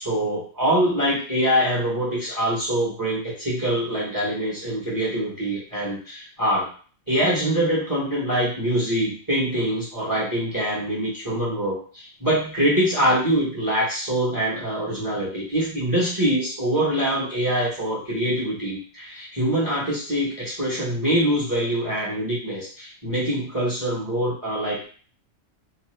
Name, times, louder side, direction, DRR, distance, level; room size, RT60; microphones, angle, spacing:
voice 1, 0.0-6.7 7.1-15.3 15.5-24.9, right 1 dB, 15° right, -6 dB, 0.9 m, -24 dB
2.8 x 2.1 x 3.1 m, 0.41 s
omnidirectional pair, 1.4 m